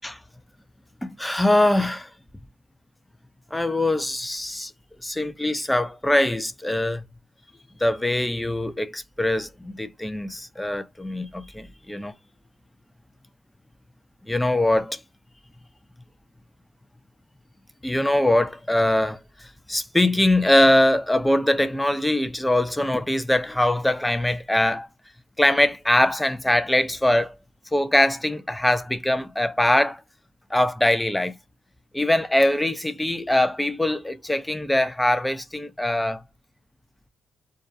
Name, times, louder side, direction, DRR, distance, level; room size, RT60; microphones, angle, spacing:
voice 1, 1.0-2.1 3.5-4.7 5.0-7.0 7.8-12.1 14.3-15.0 17.8-24.9 25.4-27.4 27.7-30.0 30.5-31.4 31.9-36.2, left 1 dB, 10° left, 0.3 m, -22 dB
2.3 x 2.1 x 2.5 m
cardioid pair, 90°, 0 cm